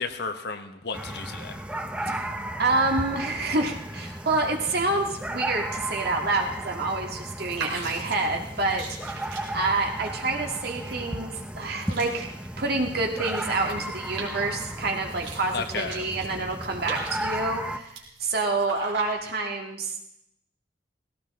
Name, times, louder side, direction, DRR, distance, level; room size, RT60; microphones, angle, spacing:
voice 1, 0.0-1.6 2.1-2.2 15.5-16.0, left 4 dB, 60° left, 7 dB, 1.3 m, -33 dB
sound 1, 0.9-17.8, right 1 dB, 5° right, 0.8 m, -35 dB
voice 2, 2.6-9.2 9.5-12.3 12.6-17.9 18.2-20.0, right 3 dB, 60° right, 2 dB, 2.2 m, -27 dB
sound 2, 7.3-19.4, right 4 dB, 75° right, 3.9 m, -43 dB
18.5 x 17.0 x 3.8 m, 0.82 s
head